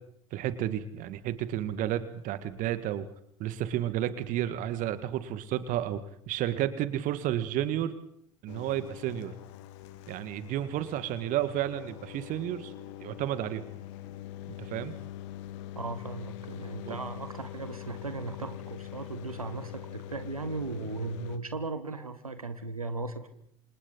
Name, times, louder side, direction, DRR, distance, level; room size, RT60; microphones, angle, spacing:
voice 1, 0.3-3.1 3.4-6.0 6.3-8.0 8.4-9.3 10.1-12.7 13.0-13.6 14.6-14.9 16.8-17.0, right 12 dB, 50° right, 12 dB, 1.9 m, -31 dB
sound 1, 8.5-21.4, left 12 dB, 60° left, 1.7 m, -43 dB
voice 2, 15.7-23.3, right 3 dB, 85° right, 10 dB, 1.4 m, -37 dB
29.0 x 27.0 x 4.1 m, 0.70 s
figure-of-eight pair, 65°, 18 cm